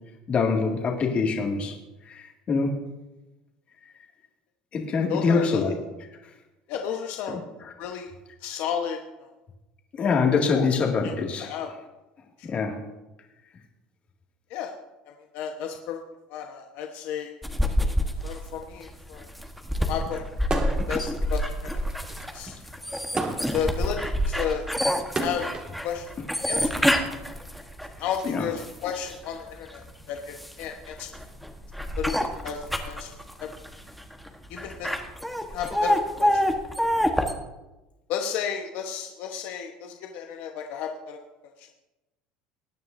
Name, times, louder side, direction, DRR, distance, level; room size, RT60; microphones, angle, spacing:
voice 1, 0.3-1.8 2.1-2.8 4.7-5.7 7.3-7.7 10.0-11.5 12.4-12.8 28.2-28.5, left 4 dB, 40° left, 1 dB, 2.1 m, -25 dB
voice 2, 5.1-5.7 6.7-7.4 7.8-8.1 8.4-9.3 10.5-10.7 11.0-11.7 12.4-12.5 14.5-14.7 15.1-16.0 16.3-17.3 18.2-19.3 19.9-20.2 20.9-21.8 22.3-22.6 23.5-24.6 25.2-25.5 25.8-26.1 26.5-26.7 28.0-31.1 32.0-33.1 33.4-33.5 34.5-34.9 35.5-36.4 38.1-41.2 41.6-41.7, left 8 dB, 70° left, 3 dB, 1.1 m, -33 dB
sound 1, 17.4-29.2 29.7-37.3, equal, ahead, 1.2 m, -27 dB
sound 2, 20.4-21.0 21.3-25.7 26.6-28.2, right 3 dB, 30° right, 1.9 m, -33 dB
20.0 x 9.4 x 2.6 m, 1.0 s
supercardioid pair, 100°, 3 cm